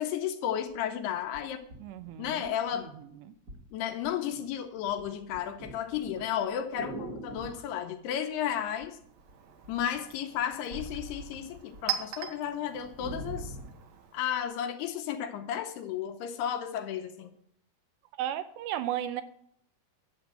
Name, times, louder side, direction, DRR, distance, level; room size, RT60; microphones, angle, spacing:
voice 1, 0.0-1.6 2.2-2.9 3.7-9.0 9.7-13.6 14.1-17.4, left 9 dB, 75° left, 2.7 m, -33 dB
sound 1, 0.7-0.8 1.3-2.8 3.5-3.7 4.0-4.5 4.8-7.7 8.8-9.3 9.6-11.9 12.2-12.3 12.6-13.8 14.4-14.5, right 1 dB, 35° right, 1.5 m, -43 dB
voice 2, 1.8-2.5 18.2-19.2, right 12 dB, 80° right, 3.0 m, -34 dB
Chink clink, 8.9-14.5, right 10 dB, 65° right, 2.7 m, -41 dB
11.5 x 7.9 x 7.7 m
omnidirectional pair, 5.0 m